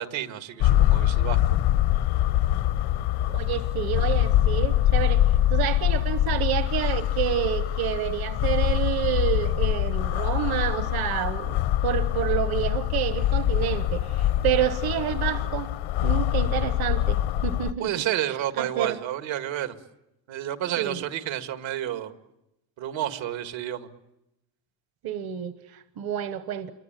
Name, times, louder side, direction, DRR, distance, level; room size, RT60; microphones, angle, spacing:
voice 1, 0.0-1.4 17.8-19.8 20.3-22.1 22.8-23.9, right 12 dB, 80° right, 9 dB, 2.0 m, -30 dB
sound 1, 0.6-17.7, left 12 dB, 85° left, 1.2 m, -24 dB
voice 2, 3.3-11.6 11.8-15.7 16.0-17.9 18.6-19.0 20.8-21.0 25.0-26.7, right 11 dB, 55° right, 11 dB, 1.1 m, -29 dB
28.0 x 23.5 x 9.1 m, 0.89 s
cardioid pair, 170°, 45 cm